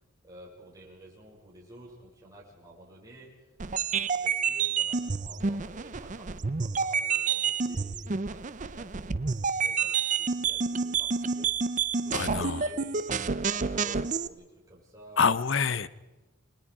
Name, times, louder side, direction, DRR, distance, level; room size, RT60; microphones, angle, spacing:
voice 1, 0.2-11.5 12.0-13.1 13.4-15.2, right 1 dB, 15° right, -4 dB, 6.4 m, -51 dB
sound 1, 3.6-14.3, right 5 dB, 35° right, 0.6 m, -29 dB
voice 2, 12.1-12.7 15.2-15.9, left 5 dB, 60° left, 16 dB, 0.8 m, -26 dB
30.0 x 20.5 x 4.9 m, 1.1 s
head